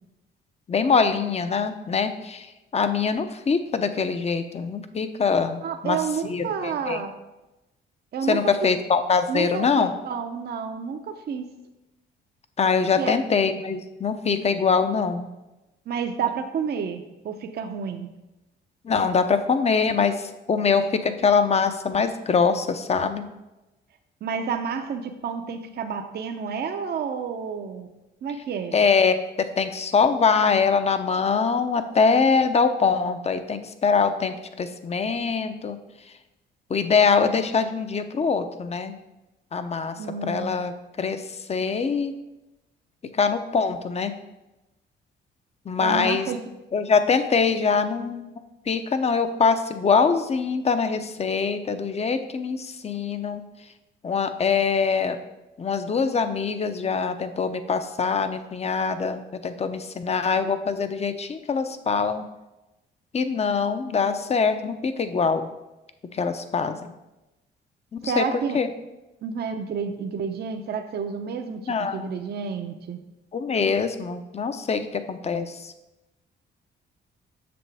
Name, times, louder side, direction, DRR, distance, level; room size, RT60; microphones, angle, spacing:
voice 1, 0.7-2.5 2.7-6.0 6.2-7.0 8.3-9.9 12.6-15.3 18.8-23.2 28.7-29.2 29.6-35.8 36.7-39.0 39.5-39.9 40.2-41.2 41.5-42.1 43.2-44.1 45.7-46.3 46.7-48.3 48.7-53.4 54.0-55.2 55.6-62.2 63.1-65.5 66.1-66.9 67.9-68.2 68.5-68.7 71.7-72.2 73.3-75.7, left 5 dB, 30° left, 9 dB, 0.6 m, -23 dB
voice 2, 5.6-7.1 8.1-8.7 9.3-11.5 13.0-13.2 15.9-18.1 24.2-27.9 28.2-28.8 40.0-40.5 45.8-46.4 68.0-68.6 69.2-73.0, right 6 dB, 55° right, 6 dB, 0.7 m, -30 dB
7.7 x 6.4 x 3.4 m, 0.99 s
cardioid pair, 90°, 20 cm